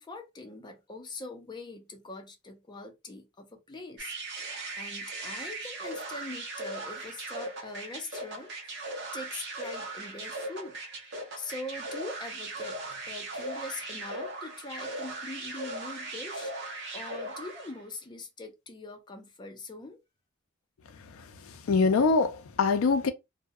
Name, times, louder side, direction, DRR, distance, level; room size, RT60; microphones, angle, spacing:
voice 1, 0.0-8.5 8.9-10.8 11.4-16.5 16.9-20.0, left 2 dB, 20° left, 0.4 m, -42 dB
sound 1, 4.0-17.8, right 2 dB, 55° right, 0.7 m, -38 dB
voice 2, 20.9-23.1, left 4 dB, 80° left, 0.4 m, -25 dB
2.3 x 2.0 x 2.6 m
head